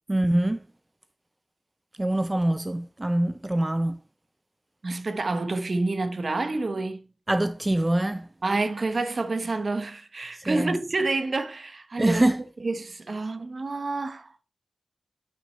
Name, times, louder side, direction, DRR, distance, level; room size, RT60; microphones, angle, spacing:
voice 1, 0.1-0.6 2.0-4.0 7.3-8.3 10.3-10.8 12.0-12.4, right 1 dB, 20° right, 0.4 m, -24 dB
voice 2, 4.8-7.0 8.4-12.2 12.6-14.3, right 3 dB, 50° right, 0.9 m, -28 dB
8.6 x 6.0 x 4.2 m
wide cardioid pair, 105°, 0 cm